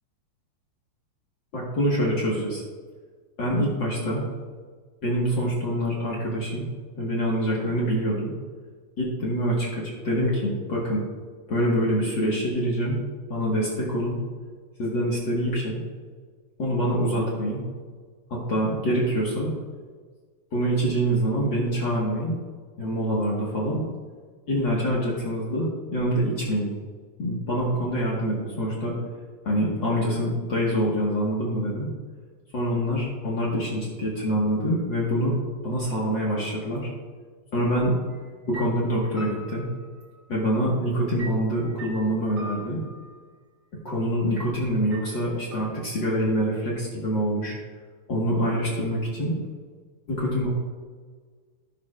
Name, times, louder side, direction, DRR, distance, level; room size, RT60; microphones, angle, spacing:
voice 1, 1.5-2.6 3.4-4.2 5.0-6.6 7.0-8.3 9.0-11.0 11.5-13.0 13.3-14.2 14.8-15.8 16.6-17.6 18.3-19.5 20.5-22.4 22.8-23.8 24.5-26.7 27.2-29.0 29.4-31.9 32.5-35.3 35.6-36.9 37.5-37.9 38.5-39.7 40.3-42.8 43.8-47.6 48.1-49.4 50.1-50.5, equal, 70° left, -5 dB, 1.0 m, -25 dB
sound 1, 38.1-38.3 38.5-40.4 41.2-43.2 44.3-44.5 44.9-46.2, right 2 dB, 15° right, 1.6 m, -43 dB
17.0 x 6.6 x 2.5 m, 1.6 s
omnidirectional pair, 4.7 m